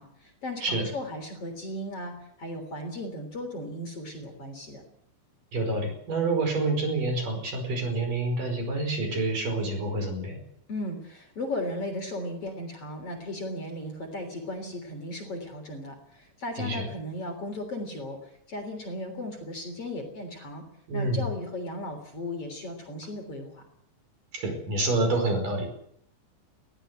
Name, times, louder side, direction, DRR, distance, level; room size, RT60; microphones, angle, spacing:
voice 1, 0.0-4.8 10.7-20.6 20.9-23.7, left 1 dB, 35° left, 5 dB, 4.1 m, -36 dB
voice 2, 5.5-10.4 16.6-16.8 20.9-21.2 24.3-25.7, right 2 dB, 50° right, 5 dB, 6.6 m, -28 dB
21.5 x 15.5 x 8.1 m, 0.70 s
omnidirectional pair, 4.8 m